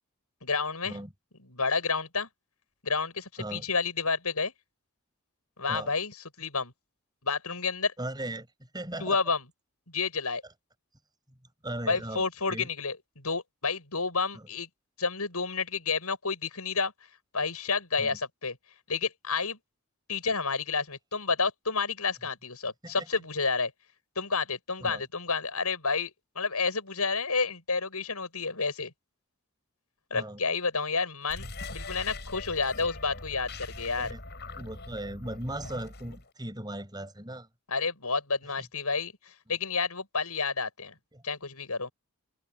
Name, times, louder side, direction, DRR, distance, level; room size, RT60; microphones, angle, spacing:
voice 1, 0.4-1.0 1.5-2.3 2.8-4.5 5.6-6.7 7.2-7.9 9.0-9.4 9.9-10.4 11.9-14.7 15.0-16.9 17.3-18.5 18.9-19.6 20.1-23.7 24.2-28.9 30.1-31.5 31.7-34.1 37.7-40.9 41.2-41.9, left 4 dB, 85° left, 8.0 m, -30 dB
voice 2, 8.0-9.2 11.3-11.4 11.6-12.7 14.3-14.5 18.0-18.2 22.8-23.1 24.8-25.0 30.1-30.4 33.9-34.2 34.6-37.5 38.6-38.7 39.5-39.6 41.1-41.2, right 1 dB, 20° right, 7.2 m, -38 dB
sound 1, 31.2-36.3, left 2 dB, 50° left, 7.3 m, -42 dB
open air
head